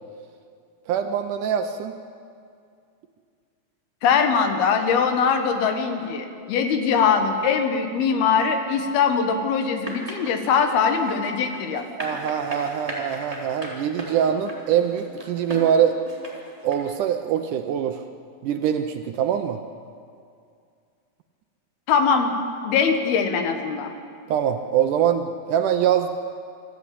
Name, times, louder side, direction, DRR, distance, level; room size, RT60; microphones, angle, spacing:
voice 1, 0.9-1.9 12.0-16.0 16.2-18.0 18.4-19.6 24.3-26.1, right 9 dB, 75° right, 7 dB, 2.0 m, -23 dB
voice 2, 4.0-11.9 21.9-22.3 22.6-23.9, left 6 dB, 85° left, 6 dB, 3.4 m, -22 dB
sound 1, 9.8-16.8, right 1 dB, 10° right, 3.2 m, -36 dB
25.0 x 13.5 x 8.5 m, 2.3 s
omnidirectional pair, 4.3 m